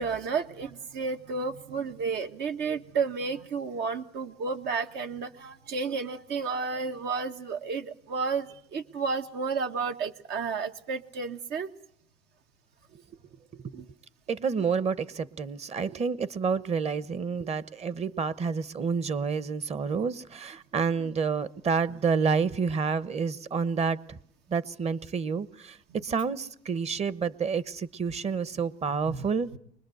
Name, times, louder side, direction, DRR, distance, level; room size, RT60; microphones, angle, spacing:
voice 1, 0.0-11.7 13.7-13.9 21.0-21.1 29.0-29.3, right 5 dB, 75° right, 1.5 m, -32 dB
voice 2, 13.5-13.8 14.3-24.2 24.5-25.8 26.0-29.5, right 5 dB, 40° right, 1.1 m, -29 dB
24.5 x 21.0 x 7.9 m
cardioid pair, 110°, 17 cm